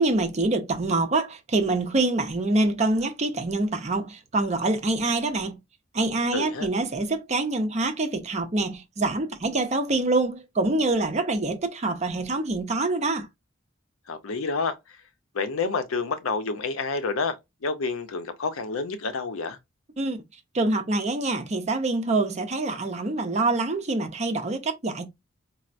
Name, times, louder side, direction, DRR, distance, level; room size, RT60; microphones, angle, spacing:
voice 1, 0.0-5.6 5.9-13.3 20.0-20.2 20.5-25.1, right 2 dB, 35° right, 0.5 m, -25 dB
voice 2, 6.3-6.7 14.1-14.8 15.3-17.4 17.6-19.6, left 4 dB, 85° left, 0.6 m, -28 dB
4.2 x 2.0 x 2.5 m
head